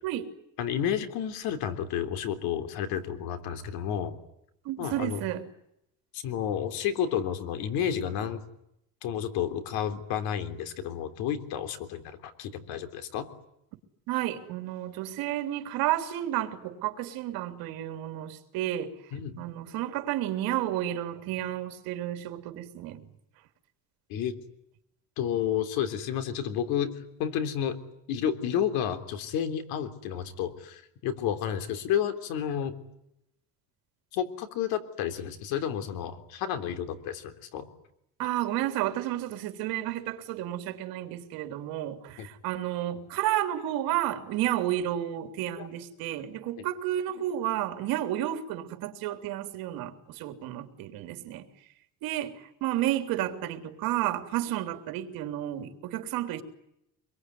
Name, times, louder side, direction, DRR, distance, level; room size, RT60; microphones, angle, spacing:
voice 1, 0.6-4.1 4.8-5.2 6.1-8.4 9.0-13.3 19.1-19.4 24.1-24.4 25.2-27.8 28.1-32.8 34.1-37.7 42.2-42.3 45.6-45.7 46.6-46.7, left 9 dB, 90° left, 3.5 m, -31 dB
voice 2, 4.7-5.4 14.1-19.0 19.4-23.1 38.2-51.4 52.0-56.4, right 13 dB, 75° right, 3.5 m, -31 dB
26.0 x 22.5 x 9.6 m
cardioid pair, 160°, 35 cm